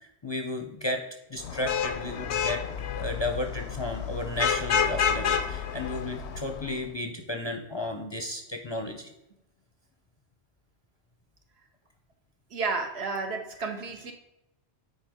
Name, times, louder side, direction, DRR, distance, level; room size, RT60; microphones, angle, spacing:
voice 1, 0.2-1.0 1.3-2.6 3.0-9.1 13.6-13.8, left 1 dB, 35° left, 4 dB, 0.5 m, -33 dB
Vehicle horn car horn honking / Traffic noise roadway noise, 1.4-6.7, left 7 dB, 85° left, 0.9 m, -29 dB
voice 2, 12.5-14.1, right 4 dB, 75° right, 4 dB, 1.2 m, -31 dB
9.0 x 4.6 x 3.5 m, 0.88 s
omnidirectional pair, 1.1 m